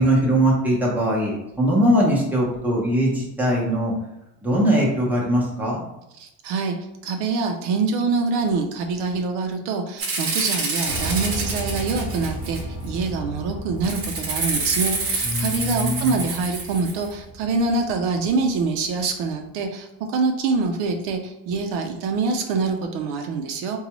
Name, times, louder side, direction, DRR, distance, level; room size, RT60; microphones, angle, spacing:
voice 1, 0.0-3.9 4.4-5.8 15.2-16.2, equal, 5° right, -4 dB, 0.7 m, -21 dB
voice 2, 6.2-6.8 7.0-23.8, right 4 dB, 70° right, 4 dB, 0.5 m, -25 dB
Rattle (instrument), 10.0-12.8 13.8-17.1, right 3 dB, 35° right, 0.8 m, -27 dB
Piano, 10.9-18.9, right 1 dB, 35° left, 0.9 m, -35 dB
3.9 x 2.3 x 2.9 m, 0.88 s
cardioid pair, 160°, 40 cm